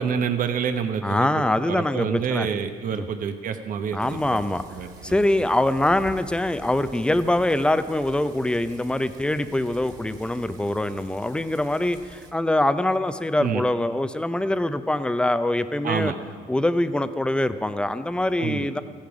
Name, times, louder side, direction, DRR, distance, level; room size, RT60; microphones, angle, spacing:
voice 1, 0.0-1.2 1.7-4.2 4.7-5.1 13.4-13.6 15.8-16.2 18.4-18.7, right 7 dB, 55° right, 8 dB, 1.1 m, -27 dB
voice 2, 1.0-2.5 2.9-3.0 3.9-4.6 5.0-16.1 16.5-18.8, left 1 dB, 5° left, 11 dB, 0.6 m, -24 dB
sound 1, 4.0-12.3, right 3 dB, 25° right, 2.1 m, -47 dB
15.5 x 10.5 x 4.9 m, 2.1 s
cardioid pair, 110°, 17 cm